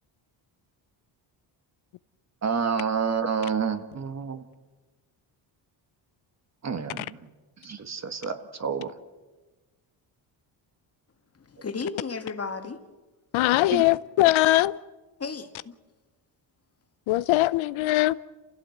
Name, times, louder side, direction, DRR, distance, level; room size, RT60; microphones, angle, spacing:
voice 1, 2.4-4.4 6.6-7.3 7.6-8.9 13.7-13.8, right 6 dB, 35° right, 1.7 m, -29 dB
voice 2, 11.3-12.8 15.2-15.8, left 5 dB, 30° left, 2.0 m, -34 dB
voice 3, 13.3-14.8 17.1-18.1, left 17 dB, 85° left, 0.7 m, -21 dB
28.0 x 16.0 x 7.9 m
cardioid pair, 100°, 47 cm